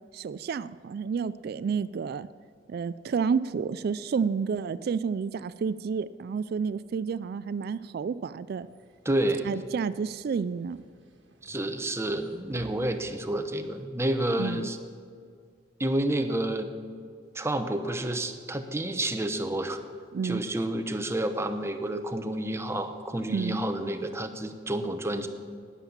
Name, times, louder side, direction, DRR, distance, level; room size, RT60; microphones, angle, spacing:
voice 1, 0.1-2.3 2.7-8.7 9.4-10.8 14.4-14.7 20.1-20.4 23.3-23.6, right 6 dB, 55° right, 17 dB, 0.3 m, -30 dB
sound 1, 8.5-13.5, right 1 dB, 85° right, 1.6 m, -53 dB
voice 2, 9.0-9.5 11.4-14.8 15.8-16.7 17.3-19.8 20.2-25.3, right 1 dB, 15° right, 8 dB, 0.8 m, -29 dB
11.5 x 9.8 x 7.2 m, 2.1 s
head